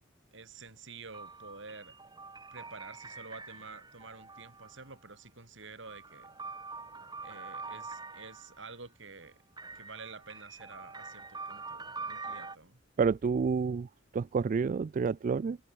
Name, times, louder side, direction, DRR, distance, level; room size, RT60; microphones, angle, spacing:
voice 1, 0.3-2.0 2.5-6.4 7.2-9.4 9.7-12.8, right 4 dB, 70° right, 4.5 m, -49 dB
sound 1, 1.1-4.9 5.6-8.7 9.6-12.6, right 4 dB, 20° right, 6.7 m, -45 dB
voice 2, 13.0-13.9 14.1-15.6, right 5 dB, 40° right, 0.3 m, -29 dB
head